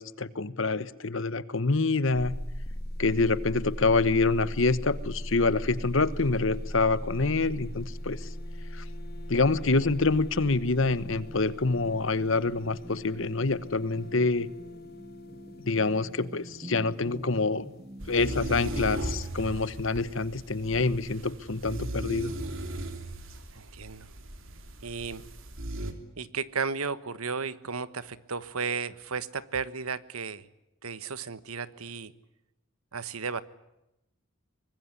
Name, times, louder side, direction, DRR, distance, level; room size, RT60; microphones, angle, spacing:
voice 1, 0.0-2.3 3.0-8.3 8.7-8.8 9.3-14.5 15.7-17.7 18.1-22.3, left 3 dB, 60° left, 16 dB, 1.2 m, -26 dB
sound 1, 2.1-16.7, equal, 45° left, 3.9 m, -39 dB
sound 2, 10.9-18.5 19.5-19.7 20.1-21.1, right 1 dB, 20° right, 2.5 m, -48 dB
sound 3, 18.0-25.9, right 1 dB, 65° right, 3.1 m, -37 dB
voice 2, 23.5-24.1 24.8-25.3 26.2-30.5 30.8-32.1 32.9-33.4, right 5 dB, 90° right, 15 dB, 1.3 m, -34 dB
24.0 x 20.5 x 9.9 m, 0.90 s
head